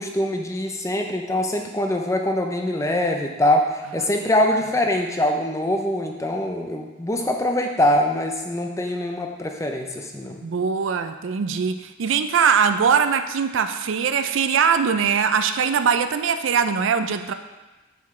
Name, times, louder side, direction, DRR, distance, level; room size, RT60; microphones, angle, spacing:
voice 1, 0.0-10.4, left 1 dB, 15° left, 3 dB, 0.5 m, -23 dB
voice 2, 10.4-17.3, right 6 dB, 70° right, 9 dB, 0.4 m, -21 dB
7.0 x 6.9 x 3.2 m, 1.1 s
head